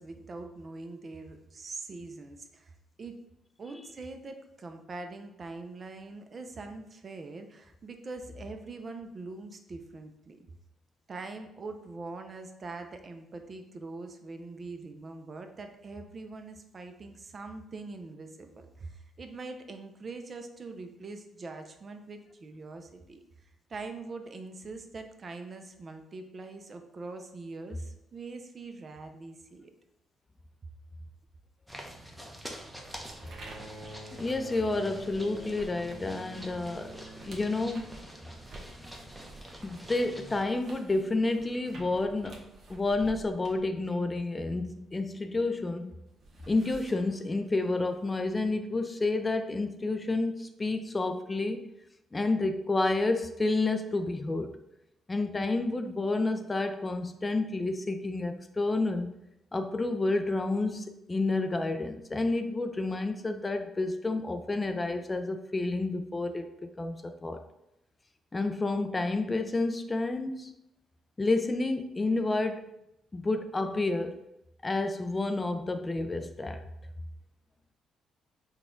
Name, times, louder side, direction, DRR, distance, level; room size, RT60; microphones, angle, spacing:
voice 1, 0.0-3.2 3.6-10.5 11.1-29.7, right 3 dB, 40° right, 6 dB, 0.5 m, -43 dB
sound 1, 31.7-40.4, equal, ahead, 0.7 m, -46 dB
sound 2, 32.0-45.5 45.8-48.5, right 2 dB, 55° right, 0.9 m, -52 dB
Bowed string instrument, 33.2-38.7 39.8-39.9, right 1 dB, 85° right, 0.9 m, -48 dB
voice 2, 34.1-37.9 39.6-45.9 46.5-51.6 52.1-54.5 55.1-59.2 59.5-67.4 68.3-70.5 71.2-72.6 73.1-74.2 74.6-76.6, left 2 dB, 25° left, 7 dB, 0.3 m, -30 dB
4.0 x 2.3 x 3.7 m, 0.85 s
cardioid pair, 90°, 0 cm